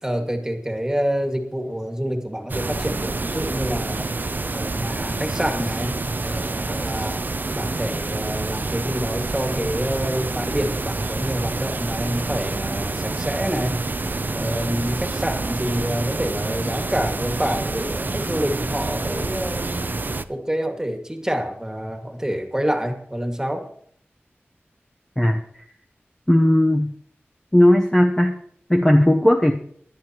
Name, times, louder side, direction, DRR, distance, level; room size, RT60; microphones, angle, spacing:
voice 1, 0.0-4.1 4.5-7.2 7.5-13.8 14.3-19.9 20.3-23.6, equal, 15° right, 4 dB, 2.0 m, -27 dB
sound 1, 2.5-20.2, right 3 dB, 45° right, 0.5 m, -27 dB
voice 2, 26.3-26.9 27.5-28.4 28.7-29.5, left 1 dB, 10° left, 2 dB, 0.9 m, -16 dB
20.0 x 11.0 x 3.0 m, 0.63 s
wide cardioid pair, 70°, 4 cm